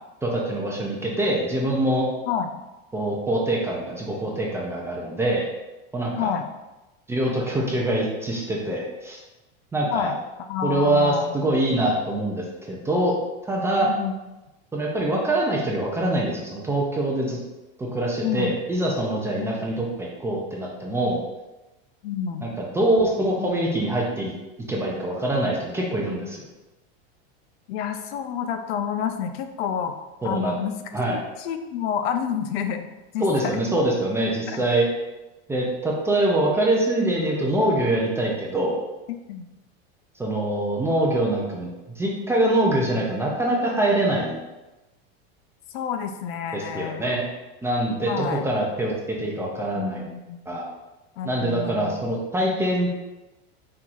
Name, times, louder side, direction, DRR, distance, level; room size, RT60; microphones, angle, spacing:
voice 1, 0.2-2.1 2.9-5.5 5.9-6.3 7.1-9.2 9.7-10.1 10.6-13.1 13.4-13.9 14.7-17.4 17.8-21.2 22.4-24.3 24.7-26.4 30.2-30.5 30.9-31.2 33.2-34.9 35.5-38.7 40.2-44.4 46.5-47.2 47.6-50.0 50.5-50.7 51.2-52.9, right 1 dB, 10° right, -2 dB, 0.4 m, -24 dB
voice 2, 6.2-6.5 9.9-10.2 10.5-11.3 11.7-11.9 13.8-14.1 18.2-18.5 19.4-19.5 22.0-22.5 27.7-30.0 30.2-30.8 31.1-32.8 33.1-33.6 34.5-34.6 39.1-39.5 42.7-43.1 45.7-47.1 48.0-48.5 49.7-50.4 51.2-52.1, left 8 dB, 70° left, 7 dB, 0.5 m, -29 dB
4.4 x 3.8 x 2.4 m, 1.0 s
supercardioid pair, 145°, 32 cm